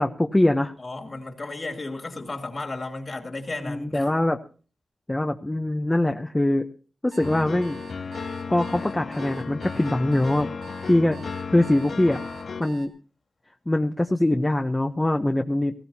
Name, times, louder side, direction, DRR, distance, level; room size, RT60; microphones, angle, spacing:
voice 1, 0.0-0.7 3.6-4.4 5.1-6.7 7.0-7.8 8.5-10.5 10.9-11.2 11.5-12.2 12.6-12.9 13.7-15.7, left 1 dB, 15° left, 0.8 m, -22 dB
voice 2, 0.8-4.1, left 2 dB, 40° left, 2.5 m, -34 dB
sound 1, 7.1-12.9, right 5 dB, 70° right, 4.5 m, -46 dB
sound 2, 7.2-12.6, left 5 dB, 55° left, 0.6 m, -34 dB
18.0 x 15.5 x 2.8 m
wide cardioid pair, 90°, 0 cm